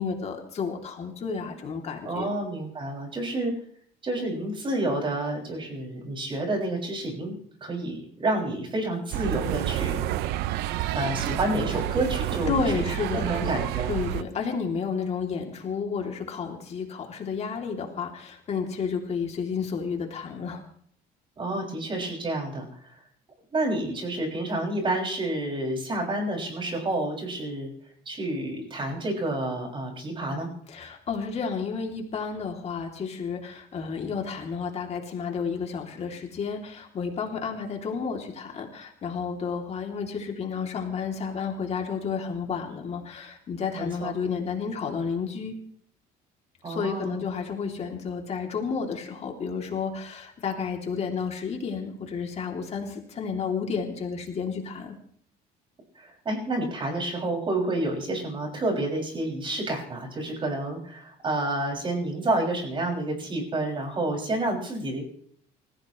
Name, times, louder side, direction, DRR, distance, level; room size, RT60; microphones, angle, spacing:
voice 1, 0.0-2.3 12.5-13.5 13.9-20.6 30.7-45.5 46.6-54.9, left 5 dB, 40° left, 2 dB, 3.0 m, -31 dB
voice 2, 2.0-3.5 4.0-10.0 10.9-12.6 13.1-13.9 21.4-23.0 23.5-27.7 28.0-30.5 43.7-44.1 46.6-47.2 55.9-65.0, right 2 dB, 30° right, 0 dB, 6.5 m, -29 dB
sound 1, 9.1-14.2, right 14 dB, 80° right, 0.8 m, -29 dB
29.0 x 15.5 x 3.2 m, 0.62 s
cardioid pair, 130°, 17 cm